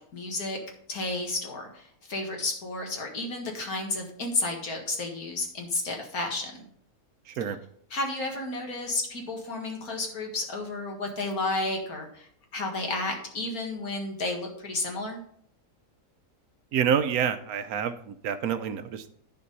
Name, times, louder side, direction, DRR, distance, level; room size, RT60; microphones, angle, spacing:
voice 1, 0.1-0.6 0.9-6.7 7.9-15.2, left 2 dB, 75° left, 2 dB, 2.3 m, -32 dB
voice 2, 7.3-7.6 16.7-19.1, right 8 dB, 75° right, 11 dB, 1.2 m, -27 dB
11.0 x 4.6 x 5.5 m, 0.64 s
omnidirectional pair, 1.6 m